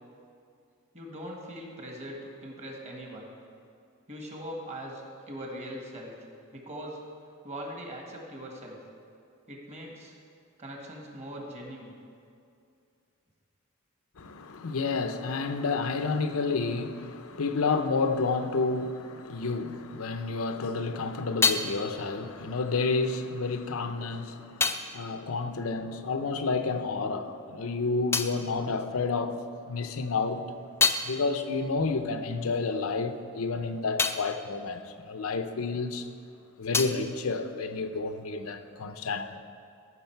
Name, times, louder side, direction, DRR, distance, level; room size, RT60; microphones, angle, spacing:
voice 1, 0.9-3.3 4.1-6.1 6.5-7.0 7.4-8.8 9.5-10.2 10.6-11.9, equal, 35° right, 1.6 m, -41 dB
voice 2, 14.2-30.5 31.0-36.1 36.6-39.4, left 4 dB, 85° left, 0.7 m, -30 dB
sound 1, 20.7-26.6 26.8-29.5 30.0-36.0 36.2-38.3, left 4 dB, 10° left, 0.4 m, -34 dB
14.5 x 6.2 x 4.5 m
head